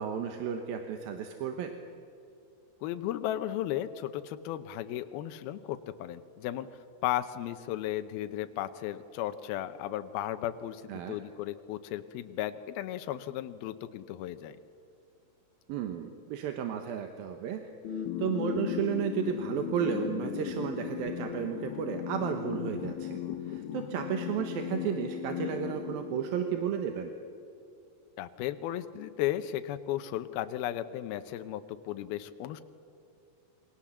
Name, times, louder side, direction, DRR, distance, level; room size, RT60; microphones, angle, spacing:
voice 1, 0.0-1.7 10.9-11.2 15.7-17.6 17.9-23.2 23.4-27.1, right 8 dB, 75° right, 6 dB, 3.0 m, -33 dB
voice 2, 2.8-6.7 7.0-14.6 28.2-32.6, left 12 dB, 85° left, 9 dB, 2.7 m, -35 dB
sound 1, 17.8-26.9, left 9 dB, 65° left, 2.5 m, -37 dB
28.0 x 23.5 x 7.4 m, 2.5 s
omnidirectional pair, 4.3 m